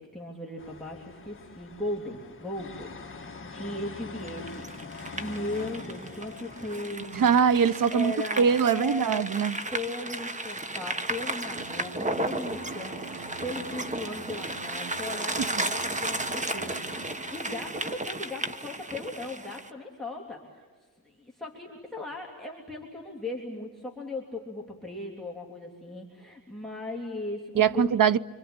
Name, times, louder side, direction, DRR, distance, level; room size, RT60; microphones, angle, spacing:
voice 1, 0.0-7.4 7.9-9.3 9.7-20.6 21.0-28.0, left 2 dB, ahead, 3.1 m, -37 dB
sound 1, 0.6-6.9, left 4 dB, 35° left, 1.9 m, -43 dB
sound 2, 4.2-19.7, right 2 dB, 20° right, 1.3 m, -34 dB
voice 2, 7.1-9.6 27.6-28.2, right 7 dB, 65° right, 0.8 m, -22 dB
sound 3, 11.6-18.1, right 5 dB, 85° right, 3.7 m, -45 dB
26.0 x 25.5 x 8.8 m
wide cardioid pair, 125°, 36 cm